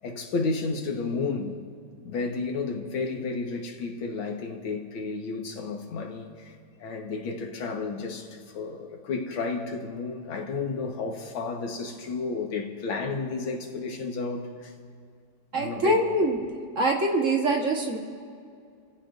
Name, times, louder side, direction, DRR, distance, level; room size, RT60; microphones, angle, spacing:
voice 1, 0.0-1.6 2.0-14.7 15.5-16.0, left 4 dB, 75° left, 2.2 m, -32 dB
voice 2, 15.5-16.4 16.7-18.0, right 1 dB, 40° right, 1.7 m, -24 dB
29.0 x 16.0 x 2.6 m
omnidirectional pair, 2.2 m